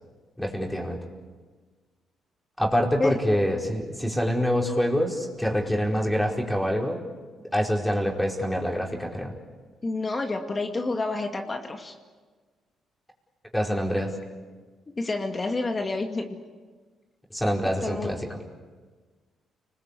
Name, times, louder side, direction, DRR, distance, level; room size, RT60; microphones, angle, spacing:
voice 1, 0.4-1.0 2.6-7.0 7.5-9.3 13.5-14.1 17.3-18.2, equal, 5° left, 0 dB, 4.9 m, -25 dB
voice 2, 9.8-11.9 15.0-16.3 17.8-18.2, left 3 dB, 25° left, 4 dB, 2.3 m, -29 dB
30.0 x 21.5 x 8.5 m, 1.4 s
cardioid pair, 90°, 0 cm